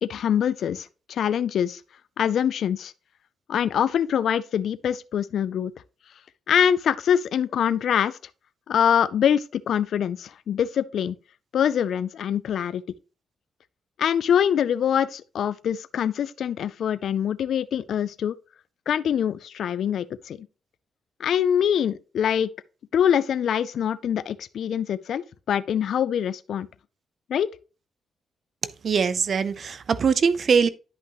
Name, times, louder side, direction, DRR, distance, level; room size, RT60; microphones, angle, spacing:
voice 1, 0.0-1.8 2.2-2.9 3.5-5.7 6.5-8.2 8.7-11.1 11.5-12.8 14.0-18.3 18.9-20.5 21.2-22.5 22.9-26.7 27.3-27.5, left 9 dB, 70° left, 0.4 m, -24 dB
voice 2, 28.8-30.7, right 6 dB, 50° right, 0.5 m, -22 dB
10.5 x 5.6 x 3.0 m
cardioid pair, 105°, 0 cm